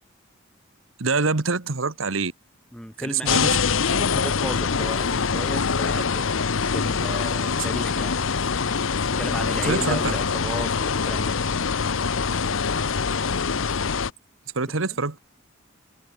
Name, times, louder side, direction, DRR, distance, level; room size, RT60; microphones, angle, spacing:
voice 1, 1.0-2.3 3.0-3.5 9.6-10.1 14.5-15.2, right 4 dB, 85° right, 1.4 m, -25 dB
voice 2, 2.7-3.6 4.0-6.3 6.7-8.2 9.2-11.3, equal, 5° left, 4.9 m, -34 dB
sound 1, 3.2-14.1, left 5 dB, 80° left, 0.8 m, -24 dB
head